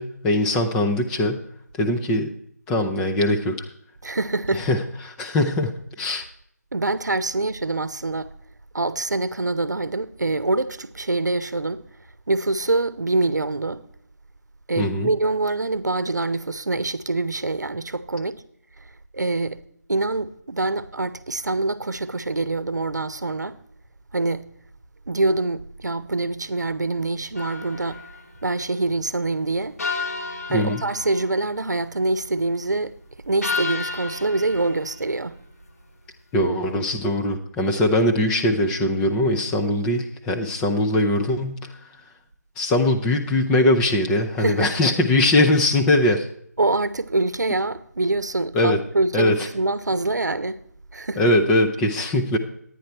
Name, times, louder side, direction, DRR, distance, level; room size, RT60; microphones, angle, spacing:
voice 1, 0.0-1.4 1.8-2.3 2.7-3.6 4.5-6.2 14.8-15.1 30.5-30.8 36.3-41.7 42.6-46.3 48.5-48.8 49.1-49.4 51.2-52.4, left 1 dB, 5° left, 0.4 m, -21 dB
voice 2, 4.0-4.7 6.7-8.3 8.7-11.8 12.3-13.8 14.7-18.4 19.1-19.6 19.9-23.6 24.1-24.5 25.1-28.0 28.4-29.8 30.5-33.0 33.2-35.4 44.4-44.8 46.6-50.6 50.9-51.3, right 2 dB, 85° right, 0.8 m, -25 dB
sound 1, 27.3-28.2 29.8-31.6 33.4-35.1, left 4 dB, 60° left, 1.3 m, -31 dB
11.0 x 9.6 x 4.4 m
figure-of-eight pair, 160°, 9 cm